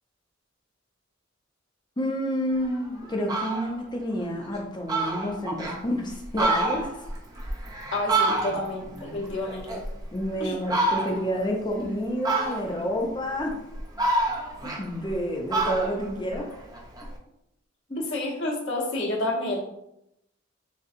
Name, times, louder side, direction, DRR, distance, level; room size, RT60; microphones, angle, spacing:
voice 1, 2.0-6.9 8.4-8.7 8.9-9.2 10.1-13.6 14.6-16.5 17.9-18.0, equal, 25° left, 1 dB, 0.7 m, -29 dB
Fowl, 2.6-2.8 3.1-3.7 4.2-4.3 4.6-4.7 4.9-5.8 6.2-8.8 9.2-10.2 10.7-11.3 12.2-12.9 13.5-15.2 15.5-17.1, right 2 dB, 20° right, 0.6 m, -27 dB
voice 2, 7.9-9.9 10.4-10.5 18.0-19.6, left 1 dB, 65° left, -3 dB, 1.1 m, -29 dB
6.5 x 2.3 x 2.6 m, 0.81 s
head